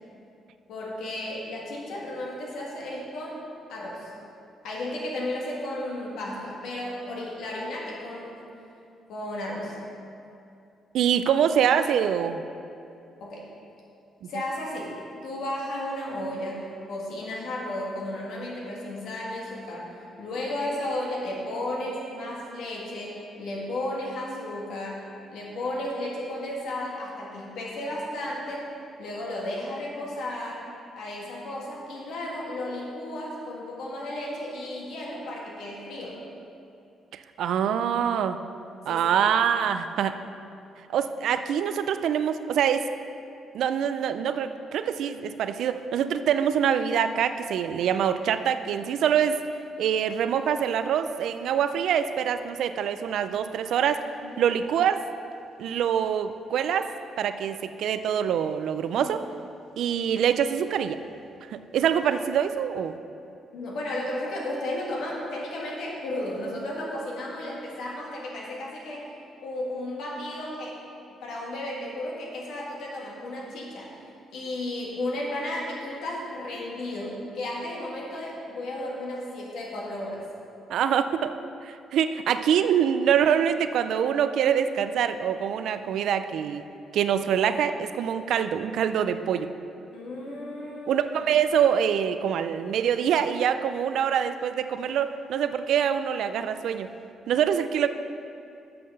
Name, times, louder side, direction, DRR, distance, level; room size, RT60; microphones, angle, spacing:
voice 1, 0.7-3.4 3.7-4.1 4.6-8.4 9.1-9.8 13.2-13.5 14.3-15.0 15.2-28.7 29.0-30.6 31.0-36.2 38.9-39.0 54.2-54.4 59.0-59.1 63.5-69.1 69.4-70.8 71.2-74.0 74.3-80.2 89.9-91.0, left 1 dB, 75° left, -3 dB, 2.0 m, -34 dB
voice 2, 10.9-12.4 37.1-38.4 38.9-40.2 40.9-42.9 43.5-49.4 49.8-54.0 54.4-55.0 55.6-56.9 57.2-59.2 59.8-61.0 61.5-62.9 80.7-81.4 81.6-86.6 86.9-89.5 90.9-96.9 97.3-97.9, right 8 dB, 75° right, 10 dB, 0.4 m, -25 dB
7.7 x 5.9 x 6.4 m, 2.6 s
cardioid pair, 90°, 0 cm